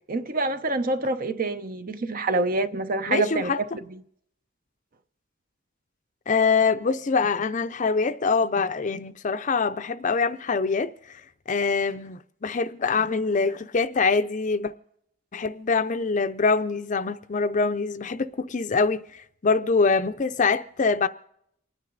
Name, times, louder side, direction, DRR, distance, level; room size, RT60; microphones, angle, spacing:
voice 1, 0.1-3.7 3.9-4.0, right 2 dB, 45° right, 0.8 m, -26 dB
voice 2, 3.1-3.6 6.3-10.9 11.5-14.7 15.3-21.1, left 4 dB, 40° left, 0.5 m, -24 dB
28.5 x 9.8 x 4.0 m
head